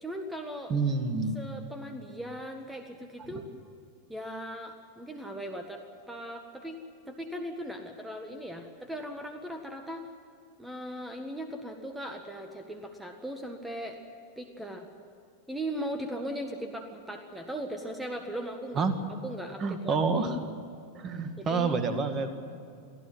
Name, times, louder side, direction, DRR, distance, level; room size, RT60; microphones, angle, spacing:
voice 1, 0.0-0.7 1.3-3.5 4.1-6.8 7.1-10.1 10.6-14.0 14.4-14.9 15.5-18.9 19.2-20.4 21.4-21.8, equal, 5° right, 5 dB, 1.7 m, -38 dB
voice 2, 0.7-1.4 18.8-18.9 19.6-20.4 20.9-22.4, right 4 dB, 25° right, 8 dB, 2.1 m, -28 dB
24.5 x 15.5 x 9.4 m, 2.5 s
figure-of-eight pair, 90°, 0 cm